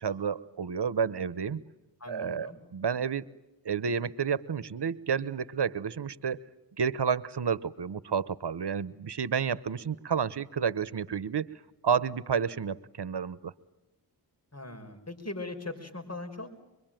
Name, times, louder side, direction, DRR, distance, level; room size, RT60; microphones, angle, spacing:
voice 1, 0.0-1.6 2.1-3.2 3.6-6.4 6.8-11.5 11.8-13.5, right 7 dB, 75° right, 18 dB, 0.9 m, -30 dB
voice 2, 2.0-2.6 14.5-16.5, left 2 dB, 40° left, 5 dB, 5.1 m, -40 dB
25.5 x 23.0 x 9.0 m, 0.97 s
cardioid pair, 40°, 41 cm